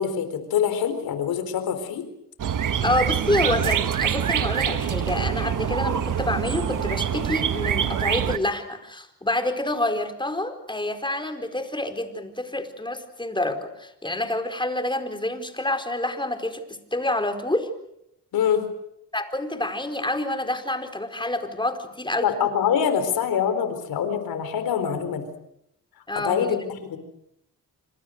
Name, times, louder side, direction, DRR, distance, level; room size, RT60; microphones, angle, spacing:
voice 1, 0.0-2.0 18.3-18.6 22.2-25.3 26.2-27.0, left 8 dB, 85° left, 9 dB, 4.4 m, -24 dB
sound 1, 2.4-8.4, right 8 dB, 60° right, 1.6 m, -25 dB
voice 2, 2.8-16.6 16.9-17.7 19.1-22.3 26.1-26.6, left 1 dB, 15° left, 7 dB, 4.6 m, -27 dB
27.0 x 26.0 x 6.7 m, 0.79 s
cardioid pair, 75°, 35 cm